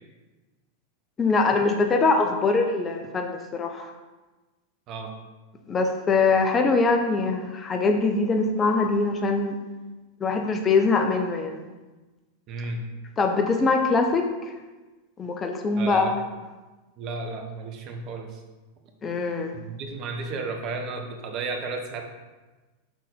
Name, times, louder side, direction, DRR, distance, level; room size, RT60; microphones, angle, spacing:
voice 1, 1.2-3.9 5.7-9.6 10.2-11.6 13.2-14.3 15.2-16.2 19.0-19.5, left 3 dB, 20° left, 4 dB, 0.6 m, -23 dB
voice 2, 12.5-12.9 15.8-16.1 17.0-18.4 19.5-22.0, right 3 dB, 35° right, 3 dB, 1.0 m, -33 dB
6.2 x 4.1 x 5.3 m, 1.2 s
figure-of-eight pair, 90°, 0 cm